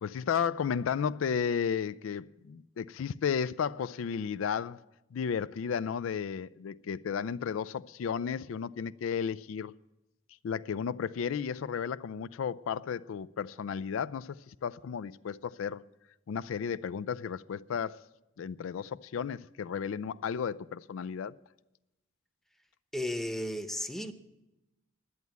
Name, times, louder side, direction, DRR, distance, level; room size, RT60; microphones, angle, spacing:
voice 1, 0.0-4.8 5.1-9.7 10.4-15.8 16.3-18.0 18.4-21.3, left 7 dB, 80° left, 0.4 m, -33 dB
voice 2, 22.9-24.1, left 1 dB, ahead, 0.8 m, -34 dB
11.0 x 8.2 x 9.3 m
head